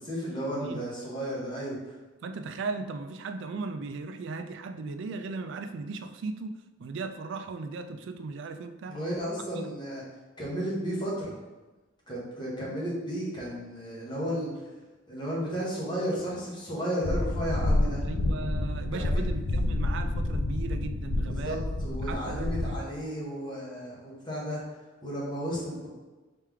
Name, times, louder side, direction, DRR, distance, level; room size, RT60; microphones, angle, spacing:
voice 1, 0.0-1.9 8.9-10.0 10.4-11.4 12.1-14.7 15.1-18.0 18.9-19.2 21.2-24.6 25.0-25.9, equal, 25° left, -6 dB, 1.1 m, -33 dB
voice 2, 0.5-0.9 2.2-6.5 6.8-9.0 9.5-9.7 18.0-21.6 22.1-22.7, right 4 dB, 60° right, 9 dB, 0.3 m, -37 dB
sound 1, 17.0-22.8, left 1 dB, 80° left, 0.4 m, -29 dB
3.3 x 3.2 x 3.5 m, 1.2 s
head